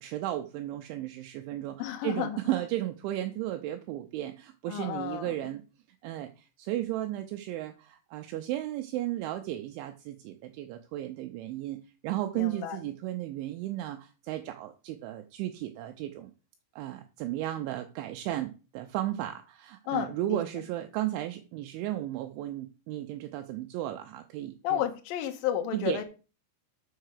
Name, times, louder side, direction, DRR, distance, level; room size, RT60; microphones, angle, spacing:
voice 1, 0.0-5.6 6.0-16.3 16.8-24.8 25.7-26.0, right 14 dB, 85° right, 2.8 m, -34 dB
voice 2, 1.8-2.4 4.7-5.3 12.3-12.8 19.9-20.4 24.6-26.0, left 11 dB, 85° left, 2.0 m, -32 dB
6.6 x 5.8 x 6.4 m
omnidirectional pair, 5.9 m